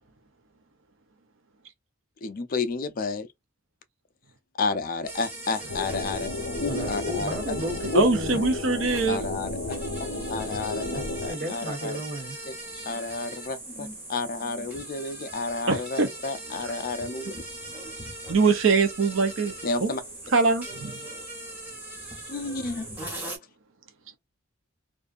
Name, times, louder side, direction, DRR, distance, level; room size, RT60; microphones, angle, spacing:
voice 1, 2.2-3.3 4.6-6.3 6.6-7.4 7.9-8.0 9.1-11.9 12.5-12.6 12.9-17.3 19.6-20.0 22.3-22.9, left 4 dB, 40° left, 0.4 m, -31 dB
sound 1, 5.1-23.4, right 1 dB, 10° right, 0.9 m, -40 dB
sound 2, 5.7-11.3, left 2 dB, 90° left, 0.6 m, -33 dB
voice 2, 6.7-8.4 8.9-9.1 10.9-11.0 11.3-12.4, equal, 45° right, 1.1 m, -34 dB
voice 3, 7.9-9.2 15.7-16.1 16.6-16.7 18.3-19.9 20.3-21.0, right 4 dB, 65° right, 0.6 m, -23 dB
2.6 x 2.3 x 2.4 m
head